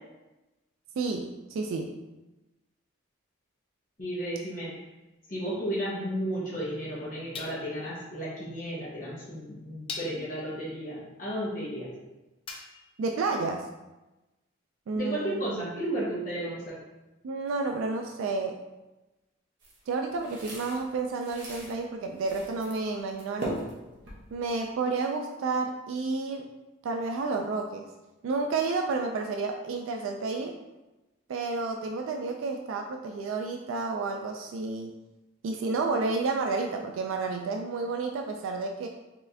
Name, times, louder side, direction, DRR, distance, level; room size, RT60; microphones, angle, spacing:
voice 1, 1.0-1.9 13.0-13.7 14.9-15.6 17.2-18.6 19.9-23.6 24.3-26.5 26.8-27.9 28.2-30.6 31.3-34.9 35.4-38.9, right 3 dB, 85° right, 4 dB, 0.3 m, -31 dB
voice 2, 4.0-4.7 5.3-11.9 14.9-16.8, right 1 dB, 45° left, -8 dB, 1.1 m, -33 dB
sound 1, 4.8-4.9 7.3-7.9 9.0-9.1 9.9-10.4 12.5-13.0, left 4 dB, 25° left, 0.4 m, -41 dB
sound 2, 19.6-21.7 22.2-22.8 23.1-24.6, right 1 dB, 60° right, 1.0 m, -39 dB
4.3 x 3.2 x 2.7 m, 1.1 s
head